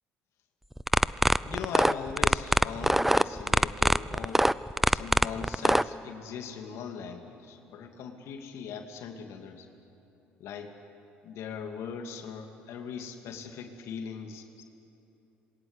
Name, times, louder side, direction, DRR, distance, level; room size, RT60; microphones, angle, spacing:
sound 1, 0.8-5.8, right 1 dB, 5° right, 0.6 m, -22 dB
voice 1, 1.4-4.5 4.9-9.7 10.4-10.8 11.2-14.6, left 7 dB, 65° left, 4 dB, 2.5 m, -40 dB
27.0 x 21.5 x 8.1 m, 2.9 s
hypercardioid pair, 60°, 5 cm